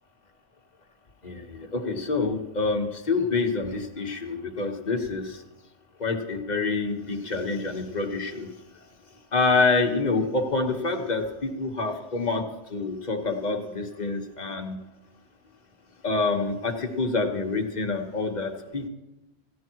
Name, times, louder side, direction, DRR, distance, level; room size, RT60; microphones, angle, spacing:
voice 1, 1.2-5.4 6.0-8.5 9.3-12.4 12.7-14.8 16.0-18.9, left 3 dB, 35° left, 3 dB, 1.4 m, -27 dB
16.0 x 11.5 x 4.6 m, 0.99 s
omnidirectional pair, 1.3 m